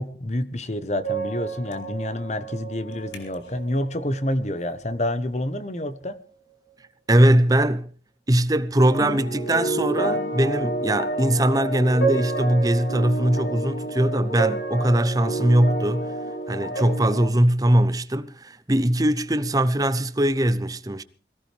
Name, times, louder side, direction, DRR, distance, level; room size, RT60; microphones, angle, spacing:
voice 1, 0.0-6.2, left 1 dB, 40° left, 1.1 m, -28 dB
sound 1, 1.0-5.3 5.8-6.0 8.9-17.3, right 2 dB, 90° left, 3.8 m, -30 dB
voice 2, 7.1-7.9 8.3-16.1 16.5-21.0, right 1 dB, 20° right, 0.7 m, -21 dB
21.5 x 16.5 x 3.4 m
head